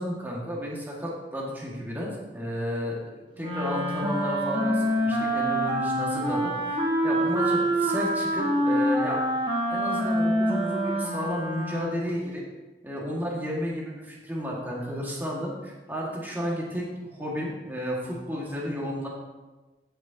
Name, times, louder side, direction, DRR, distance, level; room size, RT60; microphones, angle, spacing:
voice 1, 0.0-3.0 3.4-9.2 9.7-12.4 12.8-19.1, equal, 10° right, -4 dB, 2.0 m, -32 dB
Wind instrument woodwind instrument, 3.4-12.1, right 1 dB, 30° right, 1.1 m, -26 dB
15.0 x 6.3 x 2.9 m, 1.2 s
head